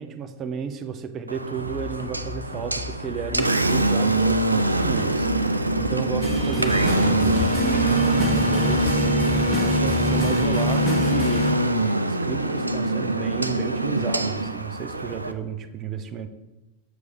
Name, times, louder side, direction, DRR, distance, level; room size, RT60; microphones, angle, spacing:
voice 1, 0.0-9.1 9.4-16.3, right 6 dB, 30° right, 9 dB, 0.6 m, -33 dB
Engine, 1.3-15.3, right 1 dB, 85° right, 0.4 m, -23 dB
sound 1, 1.5-9.3, left 3 dB, 45° left, 2.0 m, -38 dB
sound 2, 6.2-11.5, left 1 dB, 5° left, 1.5 m, -27 dB
7.0 x 4.7 x 5.4 m, 1.0 s
figure-of-eight pair, 90°, 0 cm